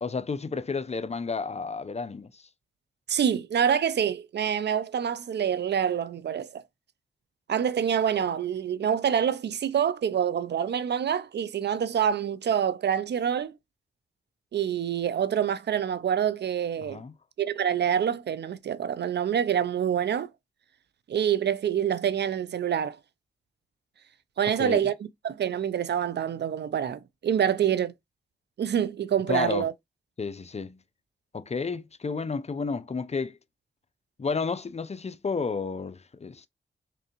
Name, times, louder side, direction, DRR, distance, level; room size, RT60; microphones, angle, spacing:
voice 1, 0.0-2.4 16.9-17.1 24.6-24.8 29.3-29.6 30.2-30.8 31.3-33.4 34.2-36.5, left 4 dB, 35° left, 0.5 m, -31 dB
voice 2, 3.1-6.6 7.5-13.5 14.5-17.0 17.4-20.3 21.1-23.0 24.4-27.9 28.6-29.7, right 8 dB, 60° right, 0.4 m, -26 dB
3.8 x 3.3 x 2.9 m
cardioid pair, 50°, 20 cm